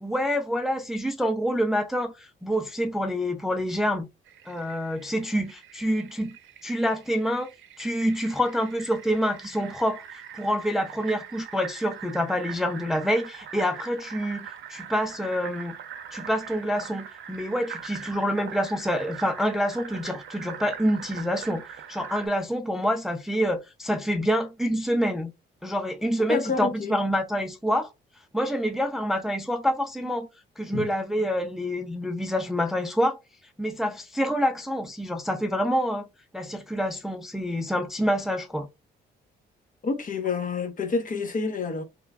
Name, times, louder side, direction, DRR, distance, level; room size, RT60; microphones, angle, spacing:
voice 1, 0.0-4.1 4.5-6.4 6.6-7.5 7.8-15.8 16.1-25.3 25.6-27.9 28.3-30.3 30.6-33.2 33.6-36.1 36.3-38.7, equal, ahead, 0.4 m, -27 dB
Fill (with liquid), 4.3-22.3, right 8 dB, 65° right, 0.6 m, -42 dB
voice 2, 26.3-27.0 30.7-30.9 39.8-41.8, left 4 dB, 40° left, 0.7 m, -28 dB
3.0 x 2.3 x 2.3 m
supercardioid pair, 70°, 21 cm